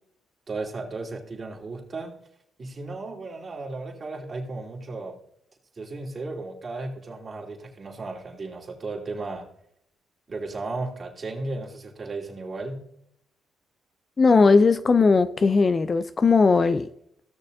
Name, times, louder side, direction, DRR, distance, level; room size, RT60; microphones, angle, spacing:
voice 1, 0.5-2.1 2.6-5.2 5.7-9.5 10.3-12.8, right 3 dB, 40° right, 3.0 m, -35 dB
voice 2, 14.2-16.9, left 4 dB, 35° left, 0.5 m, -18 dB
17.0 x 6.7 x 2.7 m
cardioid pair, 90°, 0 cm